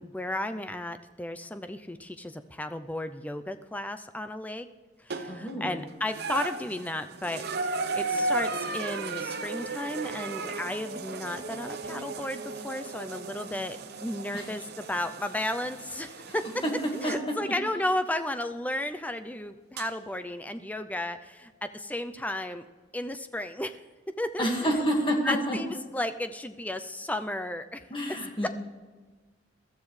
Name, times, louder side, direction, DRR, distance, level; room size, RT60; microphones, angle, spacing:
voice 1, 0.0-4.7 5.0-13.8 14.0-16.4 16.9-22.7 22.9-23.8 24.2-24.7 25.2-27.8 28.4-28.5, left 1 dB, 10° left, 9 dB, 0.5 m, -34 dB
sound 1, 5.1-5.6 6.1-17.3 18.4-18.5 19.8-19.9, right 3 dB, 55° right, 0.9 m, -35 dB
voice 2, 5.3-5.8 14.3-14.5 16.6-17.4 24.4-25.6 27.9-28.5, equal, 25° left, 1 dB, 1.8 m, -28 dB
22.0 x 13.0 x 3.2 m, 1.3 s
head